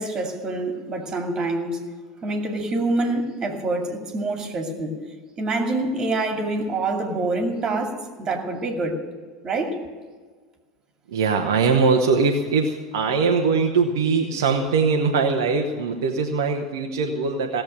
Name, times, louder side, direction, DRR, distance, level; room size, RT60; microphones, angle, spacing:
voice 1, 0.0-1.8 2.2-5.0 5.4-9.0 9.4-9.8, right 2 dB, 30° right, 2.5 m, -26 dB
voice 2, 11.1-17.6, right 4 dB, 60° right, 1.1 m, -21 dB
17.0 x 7.7 x 9.1 m
figure-of-eight pair, 80°, 2 cm